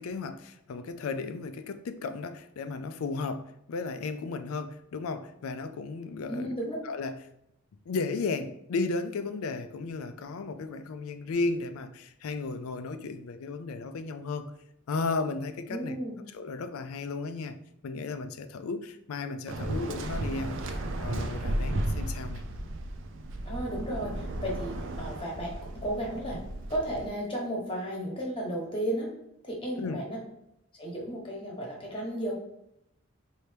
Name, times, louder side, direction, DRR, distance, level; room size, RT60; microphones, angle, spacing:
voice 1, 0.0-6.5 6.8-7.2 7.9-14.5 14.9-16.0 16.3-17.5 17.8-22.4 29.8-30.0, left 3 dB, 85° left, 10 dB, 0.4 m, -34 dB
voice 2, 6.3-6.8 15.7-16.1 23.5-26.4 26.7-29.1 29.4-30.2 30.8-32.3, right 1 dB, 25° left, -2 dB, 1.0 m, -34 dB
Waves surf, 19.5-27.1, right 1 dB, 65° right, 0.4 m, -34 dB
4.4 x 2.7 x 3.3 m, 0.80 s
head